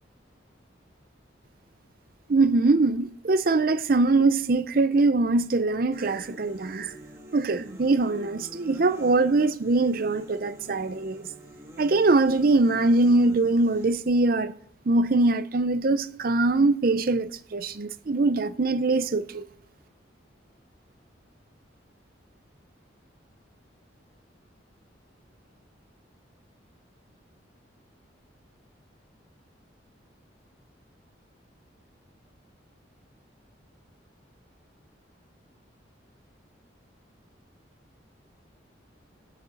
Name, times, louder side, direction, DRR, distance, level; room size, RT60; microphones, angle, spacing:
voice 1, 2.3-6.9 7.3-11.3 11.8-14.5 14.9-19.5, right 3 dB, 50° right, 0.5 m, -22 dB
sound 1, 5.9-13.9, equal, 15° right, 1.6 m, -47 dB
17.0 x 6.6 x 7.5 m
head